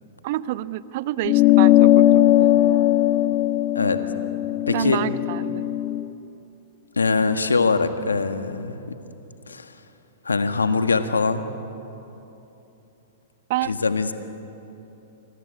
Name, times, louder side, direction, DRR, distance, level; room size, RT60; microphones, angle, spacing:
voice 1, 0.2-2.9 4.7-5.6 13.5-13.8, right 15 dB, 55° right, 15 dB, 0.9 m, -29 dB
sound 1, 1.2-6.0, left 13 dB, 40° left, 1.1 m, -18 dB
voice 2, 4.7-5.0 7.0-8.9 9.5-9.7 10.2-11.4 13.6-14.1, left 4 dB, 85° left, 9 dB, 1.6 m, -22 dB
27.0 x 23.0 x 9.6 m, 3.0 s
hypercardioid pair, 110°, 0 cm